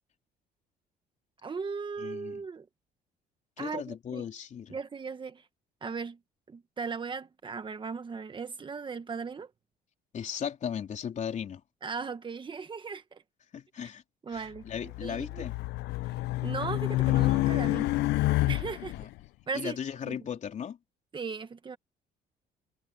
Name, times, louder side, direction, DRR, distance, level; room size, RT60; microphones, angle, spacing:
voice 1, 1.4-2.7 3.6-4.3 4.7-5.5 5.8-6.2 6.5-9.5 11.8-13.2 14.2-15.5 16.4-17.9 18.5-18.9 19.5-19.8 20.0-20.2 21.1-21.8, right 5 dB, 30° right, 1.5 m, -37 dB
voice 2, 2.0-2.4 3.6-4.8 10.1-11.6 13.5-14.0 14.3-15.5 19.0-19.1 19.5-20.8, left 8 dB, 45° left, 3.8 m, -36 dB
Race car auto racing, 14.7-19.0, left 18 dB, 85° left, 0.6 m, -28 dB
cardioid pair, 110°, 17 cm